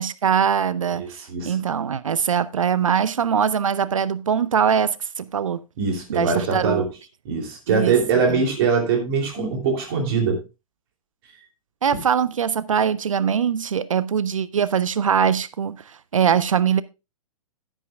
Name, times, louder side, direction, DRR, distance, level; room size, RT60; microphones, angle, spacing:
voice 1, 0.0-1.1 1.4-5.6 6.1-6.8 7.7-8.4 11.8-16.8, right 7 dB, 65° right, 0.5 m, -22 dB
voice 2, 5.8-6.8 7.2-10.4 11.9-12.0, right 5 dB, 40° right, 3.1 m, -22 dB
11.0 x 10.5 x 2.4 m
figure-of-eight pair, 115°, 18 cm